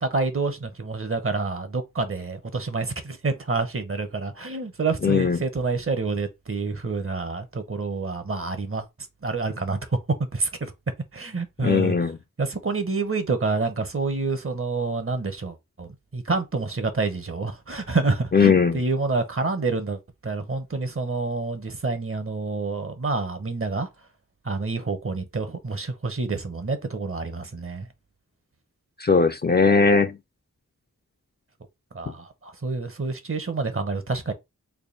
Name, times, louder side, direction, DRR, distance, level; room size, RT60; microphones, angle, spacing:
voice 1, 0.0-8.9 9.2-9.8 10.3-10.7 11.1-12.0 12.4-23.9 24.4-27.9 31.9-34.3, right 3 dB, 45° right, 0.7 m, -28 dB
voice 2, 5.0-5.4 11.6-12.2 18.3-18.8 29.0-30.2, left 5 dB, 35° left, 0.4 m, -19 dB
3.4 x 2.2 x 3.8 m
wide cardioid pair, 55°, 32 cm